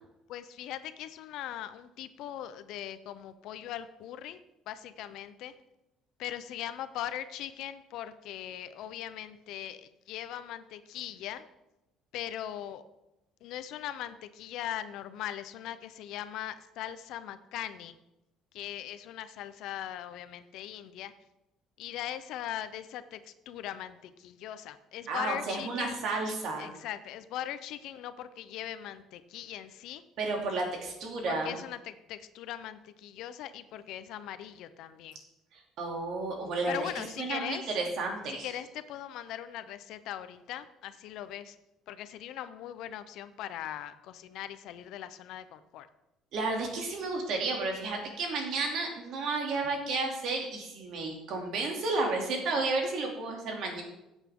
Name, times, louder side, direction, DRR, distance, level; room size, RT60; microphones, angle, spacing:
voice 1, 0.3-5.5 6.2-11.4 12.1-12.8 13.4-18.0 18.5-21.1 21.8-26.0 26.6-30.0 31.3-35.2 36.7-37.7 38.4-41.6 41.9-45.9, left 11 dB, 65° left, 12 dB, 0.7 m, -40 dB
voice 2, 25.1-26.7 30.2-31.5 35.5-38.5 46.3-53.8, right 3 dB, 55° right, 1 dB, 2.7 m, -32 dB
16.0 x 8.1 x 3.7 m, 0.94 s
cardioid pair, 155°, 0 cm